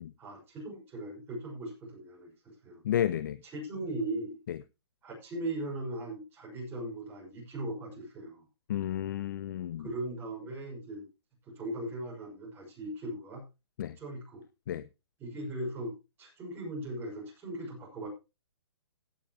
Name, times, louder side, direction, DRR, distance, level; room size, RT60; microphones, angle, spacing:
voice 1, 0.2-2.8 3.5-4.4 5.0-8.4 9.8-11.1 11.5-13.4 14.0-14.4 15.2-18.1, right 1 dB, 15° right, 6.0 m, -39 dB
voice 2, 2.8-3.4 4.5-4.6 8.7-9.9 13.8-14.0 14.7-14.8, left 11 dB, 45° left, 0.6 m, -31 dB
16.0 x 9.4 x 3.0 m
hypercardioid pair, 160°, 14 cm